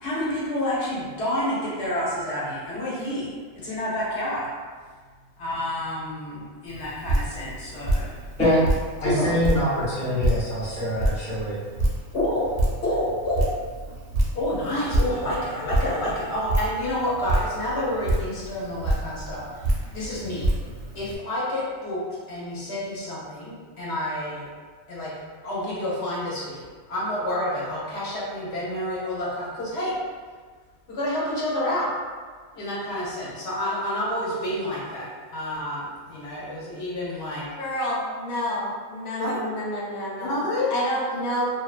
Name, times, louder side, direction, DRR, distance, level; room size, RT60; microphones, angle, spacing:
voice 1, 0.0-3.3 3.5-4.5 5.4-8.5 9.0-9.4 12.1-12.5 12.8-13.4 14.3-20.5 20.9-22.0 22.3-24.5 24.9-25.1 25.4-29.9 30.9-31.9 32.5-37.5 39.2-39.3 40.2-40.7, left 1 dB, 60° left, -7 dB, 1.0 m, -29 dB
Drip, 6.7-21.2, right 1 dB, 60° right, 0.7 m, -28 dB
voice 2, 9.0-11.5, left 1 dB, 10° left, -11 dB, 0.5 m, -24 dB
voice 3, 37.6-40.4 40.7-41.5, equal, 90° left, -4 dB, 1.1 m, -28 dB
2.5 x 2.3 x 2.4 m, 1.5 s
omnidirectional pair, 1.4 m